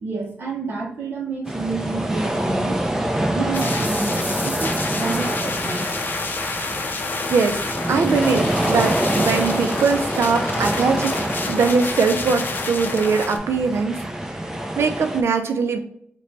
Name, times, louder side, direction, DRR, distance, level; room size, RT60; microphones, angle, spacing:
voice 1, 0.0-2.8 3.3-5.9, right 4 dB, 55° right, -3 dB, 0.7 m, -29 dB
sound 1, 1.5-15.2, right 1 dB, 10° right, 0.5 m, -26 dB
sound 2, 3.5-13.4, left 3 dB, 50° left, 0.5 m, -29 dB
voice 2, 7.3-7.6 7.9-14.0 14.8-15.8, right 5 dB, 85° right, 6 dB, 0.4 m, -21 dB
3.8 x 2.2 x 3.1 m, 0.72 s
wide cardioid pair, 115°, 4 cm